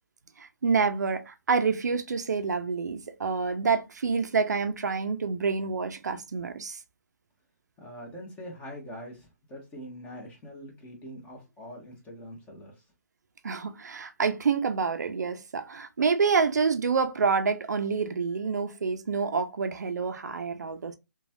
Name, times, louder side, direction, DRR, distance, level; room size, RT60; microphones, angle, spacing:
voice 1, 0.4-6.8 13.4-20.9, right 5 dB, 80° right, 0.4 m, -27 dB
voice 2, 7.8-12.8, equal, 15° left, 1.1 m, -43 dB
3.0 x 2.3 x 2.6 m
hypercardioid pair, 140°, 9 cm